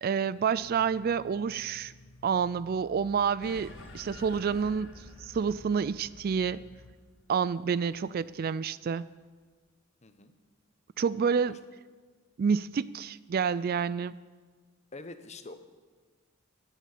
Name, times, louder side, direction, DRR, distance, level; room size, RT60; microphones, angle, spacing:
voice 1, 0.0-1.9 2.2-4.9 5.2-6.6 7.3-9.0 11.0-11.6 12.4-14.1, right 6 dB, 45° right, 17 dB, 0.3 m, -28 dB
sound 1, 0.6-6.9, left 3 dB, 85° left, 1.0 m, -54 dB
sound 2, 3.4-8.2, left 2 dB, 65° left, 1.9 m, -50 dB
voice 2, 10.0-10.3 11.5-11.6 14.9-15.6, left 3 dB, 30° left, 9 dB, 0.9 m, -45 dB
14.0 x 9.2 x 8.5 m, 1.4 s
head